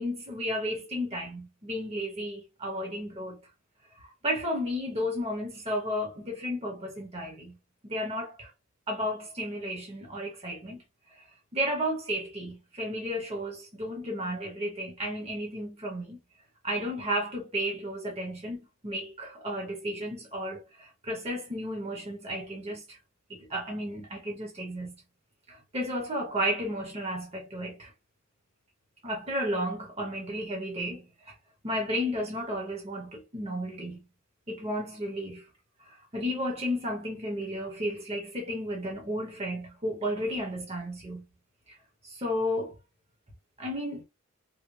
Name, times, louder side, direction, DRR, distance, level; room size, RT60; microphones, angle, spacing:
voice 1, 0.0-3.4 4.0-7.6 7.8-8.5 8.9-10.8 11.2-11.3 11.5-16.2 16.6-23.0 23.3-24.9 25.5-27.9 29.0-31.3 31.6-34.0 34.5-35.4 35.8-41.2 42.0-42.7 43.6-44.0, equal, 30° right, 1.0 m, -33 dB
3.8 x 2.1 x 3.1 m
head